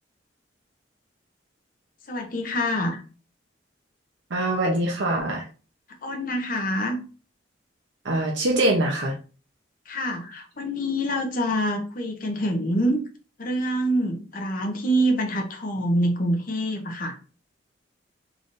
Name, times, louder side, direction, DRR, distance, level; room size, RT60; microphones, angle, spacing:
voice 1, 2.1-3.0 6.0-7.0 9.9-13.0 13.4-17.2, equal, 50° left, 3 dB, 0.7 m, -26 dB
voice 2, 4.3-5.4 8.0-9.1, right 1 dB, 75° right, -1 dB, 0.8 m, -23 dB
3.7 x 3.4 x 2.6 m, 0.36 s
head